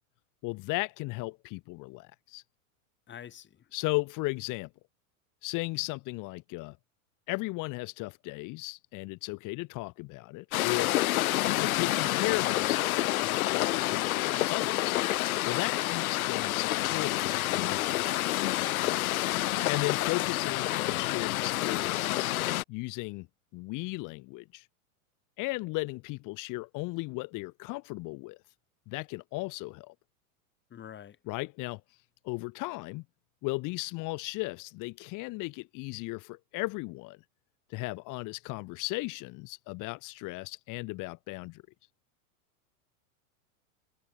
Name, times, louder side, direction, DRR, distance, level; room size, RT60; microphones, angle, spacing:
voice 1, 0.4-2.4 3.7-4.7 5.4-6.8 7.3-11.0 11.6-15.0 15.4-17.2 17.5-18.0 19.6-22.3 22.7-23.3 23.5-24.7 25.4-28.4 28.9-29.9 31.3-33.0 33.4-37.2 37.7-41.6, left 24 dB, 45° left, 3.1 m, -36 dB
voice 2, 3.1-3.7 18.6-19.1 30.7-31.2, left 9 dB, 25° left, 4.5 m, -47 dB
sound 1, 10.5-22.6, left 16 dB, 75° left, 2.0 m, -28 dB
supercardioid pair, 125°, 43 cm